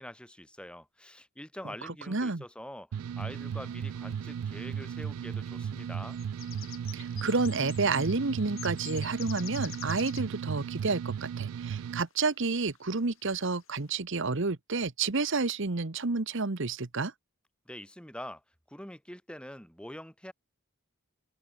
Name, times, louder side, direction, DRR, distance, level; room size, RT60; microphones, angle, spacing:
voice 1, 0.0-6.2 17.7-18.4 18.7-20.3, left 1 dB, 5° left, 4.6 m, -45 dB
voice 2, 1.8-2.4 6.9-17.1, right 3 dB, 60° right, 1.1 m, -30 dB
sound 1, 2.9-12.0, right 7 dB, 85° right, 0.3 m, -36 dB
sound 2, 3.9-4.0 4.3-4.9 5.7-10.4 11.3-11.4 11.9-12.0 12.5-12.8 13.1-13.2 13.5-13.8, left 13 dB, 65° left, 6.6 m, -47 dB
open air
head